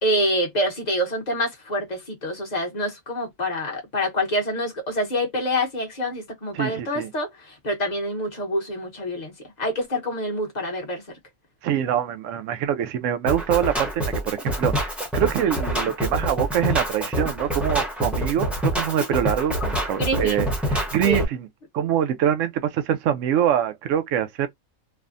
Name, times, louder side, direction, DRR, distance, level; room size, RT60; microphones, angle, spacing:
voice 1, 0.0-11.2 20.0-20.5 21.0-21.3, equal, 35° left, 0.9 m, -26 dB
voice 2, 6.5-7.1 11.6-21.5 21.7-24.5, right 10 dB, 70° right, 0.9 m, -24 dB
Drum kit, 13.3-21.3, equal, ahead, 0.6 m, -26 dB
3.3 x 2.1 x 2.5 m
omnidirectional pair, 1.5 m